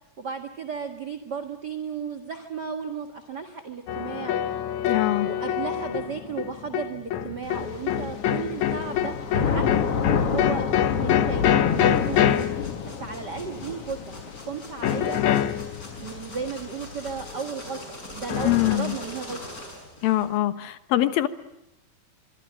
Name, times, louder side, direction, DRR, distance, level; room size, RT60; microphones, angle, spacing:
voice 1, 0.2-4.4 5.2-15.2 16.0-19.4, right 6 dB, 40° right, 6 dB, 1.6 m, -35 dB
sound 1, 3.9-13.4 14.8-16.1 18.3-18.8, left 10 dB, 65° left, 2.2 m, -25 dB
voice 2, 4.8-5.3 18.4-19.0 20.0-21.3, left 14 dB, 90° left, 11 dB, 3.0 m, -23 dB
Thunder / Rain, 7.5-17.4, left 6 dB, 50° left, 2.4 m, -30 dB
sound 2, 11.6-20.4, left 1 dB, 25° left, 6.3 m, -42 dB
25.0 x 24.5 x 7.6 m, 0.87 s
omnidirectional pair, 4.1 m